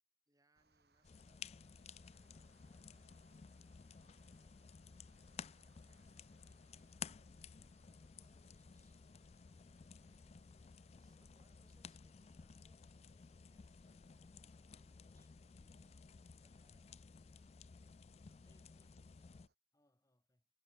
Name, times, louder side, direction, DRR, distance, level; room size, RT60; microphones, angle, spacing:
voice 1, 0.3-1.6 2.1-9.0 9.3-9.5 10.9-18.8 19.1-19.3, right 2 dB, 20° right, 4.3 m, -81 dB
sound 1, 0.5-19.5, right 3 dB, 60° right, 4.8 m, -77 dB
sound 2, 1.0-19.5, left 6 dB, 35° left, 0.4 m, -55 dB
voice 2, 18.4-20.5, left 1 dB, 20° left, 3.3 m, -78 dB
head